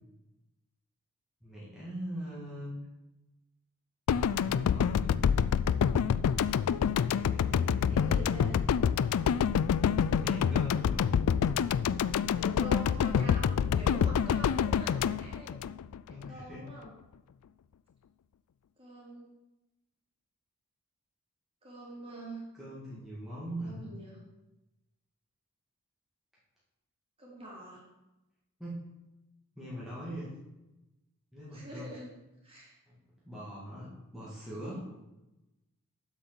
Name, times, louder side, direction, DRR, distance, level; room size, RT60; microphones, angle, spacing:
voice 1, 1.4-2.7 4.1-5.2 7.1-8.2 9.2-11.1 16.1-16.6 22.5-23.9 28.6-28.8 29.6-30.4 31.3-31.9 32.9-33.0 33.2-34.9, equal, ahead, -9 dB, 2.1 m, -42 dB
sound 1, 4.1-16.3, left 7 dB, 80° left, 0.3 m, -27 dB
voice 2, 7.8-8.6 12.3-15.5 16.1-16.9 18.8-19.3 21.6-22.4 23.6-24.2 27.2-27.8 31.5-32.1 32.4-32.8, right 1 dB, 25° right, -4 dB, 3.3 m, -45 dB
7.9 x 6.1 x 7.0 m, 0.98 s
head